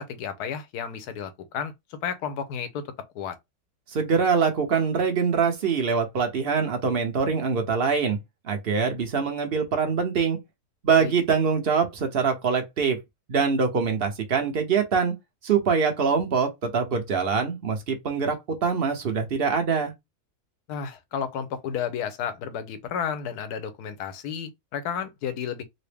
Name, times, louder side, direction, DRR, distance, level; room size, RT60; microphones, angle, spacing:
voice 1, 0.0-2.9 3.1-3.4 11.0-11.1 20.7-25.6, left 7 dB, 85° left, 1.2 m, -32 dB
voice 2, 3.9-8.2 8.4-10.4 10.8-13.0 13.3-15.1 15.4-19.9, right 5 dB, 45° right, 0.9 m, -24 dB
4.0 x 2.1 x 3.3 m
omnidirectional pair, 1.6 m